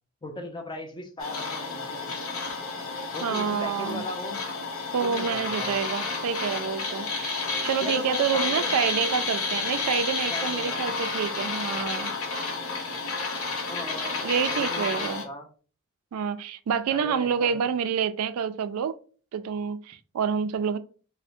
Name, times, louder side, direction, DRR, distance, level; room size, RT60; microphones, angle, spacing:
voice 1, 0.2-2.1 3.1-4.4 5.0-5.7 7.8-8.8 10.3-10.9 13.7-15.5 16.9-17.6, left 2 dB, 20° left, 0.5 m, -38 dB
sound 1, 1.2-15.2, left 4 dB, 75° left, 0.8 m, -31 dB
voice 2, 3.2-4.0 4.9-12.1 14.2-15.2 16.1-18.9 19.3-20.8, right 7 dB, 90° right, 0.3 m, -28 dB
4.3 x 2.1 x 2.5 m
head